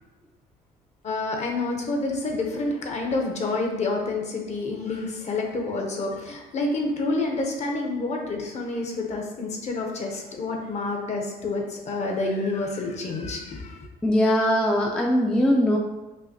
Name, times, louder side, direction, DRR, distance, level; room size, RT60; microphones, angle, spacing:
voice 1, 1.0-13.8, left 2 dB, 40° left, 1 dB, 0.8 m, -28 dB
voice 2, 14.0-15.8, equal, 5° left, 0 dB, 0.3 m, -21 dB
5.4 x 2.0 x 2.8 m, 1.1 s
cardioid pair, 110°, 17 cm